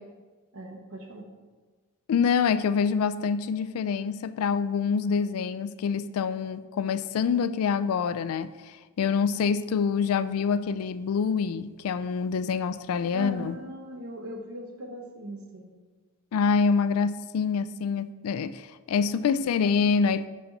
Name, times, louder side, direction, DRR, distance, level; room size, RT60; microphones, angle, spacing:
voice 1, 0.5-1.3 13.1-15.7, equal, 70° right, 3 dB, 0.9 m, -39 dB
voice 2, 2.1-13.5 16.3-20.3, left 6 dB, 75° left, 14 dB, 0.3 m, -26 dB
5.7 x 4.2 x 5.2 m, 1.3 s
head